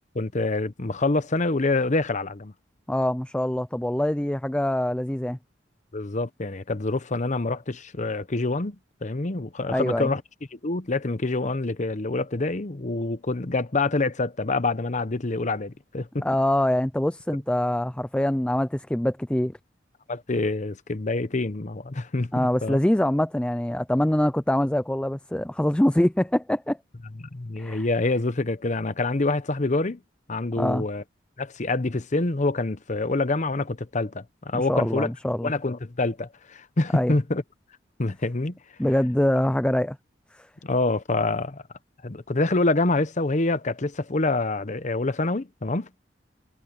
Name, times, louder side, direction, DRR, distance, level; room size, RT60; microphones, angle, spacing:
voice 1, 0.1-2.5 5.9-8.8 9.0-10.2 10.5-16.3 20.1-22.8 27.3-30.0 30.3-31.0 31.4-35.1 35.4-37.4 38.0-38.6 40.6-41.6 42.0-45.9, left 2 dB, 40° left, 0.9 m, -26 dB
voice 2, 2.9-5.4 9.7-10.1 16.2-19.5 22.3-26.8 27.6-27.8 30.6-30.8 34.5-35.5 36.9-37.2 38.8-40.0 40.3-40.5, left 1 dB, 5° left, 0.4 m, -24 dB
head